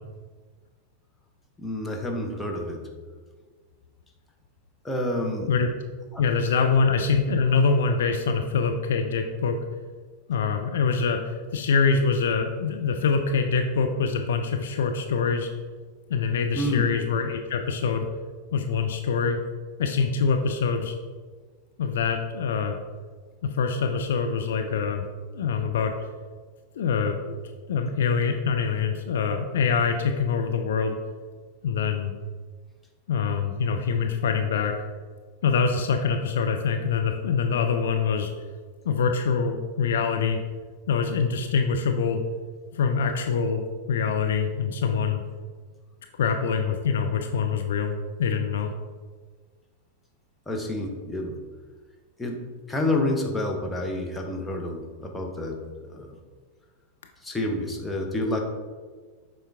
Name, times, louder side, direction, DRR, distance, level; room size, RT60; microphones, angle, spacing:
voice 1, 1.6-2.9 4.8-5.5 6.1-6.4 16.5-16.9 50.5-51.4 52.2-56.2 57.2-58.4, left 1 dB, 10° left, 1 dB, 1.1 m, -29 dB
voice 2, 6.2-9.6 10.3-15.5 16.1-18.1 18.5-19.4 19.8-20.9 21.8-22.8 23.4-25.0 25.3-25.9 26.8-27.2 27.7-31.0 31.6-32.1 33.1-34.7 35.4-38.3 38.8-40.4 40.9-42.2 42.7-45.2 46.2-48.7, left 5 dB, 60° left, 5 dB, 0.5 m, -24 dB
7.1 x 4.5 x 3.6 m, 1.5 s
figure-of-eight pair, 90°, 0 cm